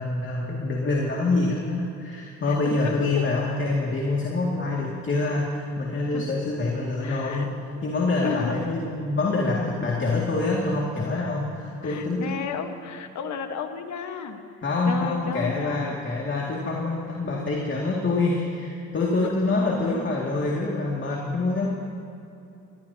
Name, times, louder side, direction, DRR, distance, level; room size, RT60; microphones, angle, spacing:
voice 1, 0.0-12.3 14.6-21.7, left 3 dB, 40° left, -3 dB, 2.3 m, -26 dB
voice 2, 2.5-3.2 6.1-6.2 7.0-7.5 7.8-7.9 8.2-8.6 11.1-11.3 11.8-14.4 14.9-16.0 16.5-16.6, left 6 dB, 70° left, 6 dB, 1.5 m, -33 dB
21.5 x 19.5 x 2.9 m, 2.7 s
cardioid pair, 90°, 30 cm